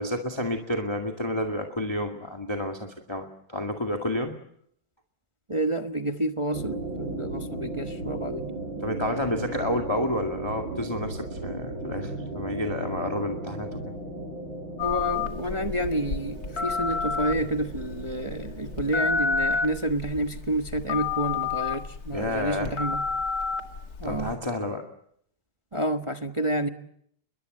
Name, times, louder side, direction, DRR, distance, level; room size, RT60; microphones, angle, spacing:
voice 1, 0.0-4.4 8.8-13.8 22.1-22.7 24.0-24.8, left 1 dB, 15° left, 3 dB, 2.1 m, -30 dB
voice 2, 5.5-8.6 14.8-23.0 24.0-24.3 25.7-26.7, right 1 dB, 20° right, 6 dB, 0.9 m, -29 dB
sound 1, 6.5-19.2, right 2 dB, 70° right, 7.8 m, -36 dB
Telephone, 14.8-24.4, left 5 dB, 50° left, 2.4 m, -30 dB
29.5 x 22.5 x 7.8 m, 0.69 s
omnidirectional pair, 2.2 m